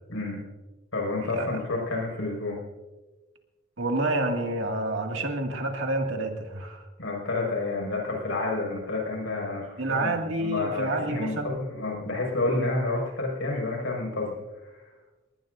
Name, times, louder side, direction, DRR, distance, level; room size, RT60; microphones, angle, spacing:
voice 1, 0.1-0.4 0.9-2.6 7.0-14.8, left 2 dB, 80° left, -1 dB, 5.7 m, -30 dB
voice 2, 1.2-1.6 3.8-6.9 9.8-11.6, right 2 dB, 70° right, 2 dB, 2.3 m, -29 dB
20.5 x 19.5 x 2.7 m, 1.2 s
head